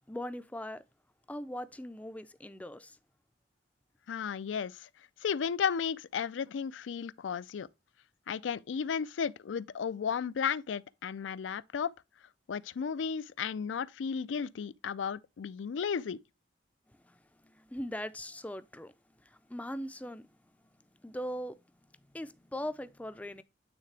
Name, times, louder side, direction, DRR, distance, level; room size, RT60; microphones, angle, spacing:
voice 1, 0.1-0.8 1.3-3.0 17.0-18.9 19.2-20.3 21.0-21.6 22.1-23.4, equal, 10° left, 0.4 m, -40 dB
voice 2, 4.1-4.9 5.2-7.7 8.3-11.9 12.5-16.2, left 7 dB, 85° left, 0.4 m, -34 dB
9.0 x 3.7 x 3.3 m
head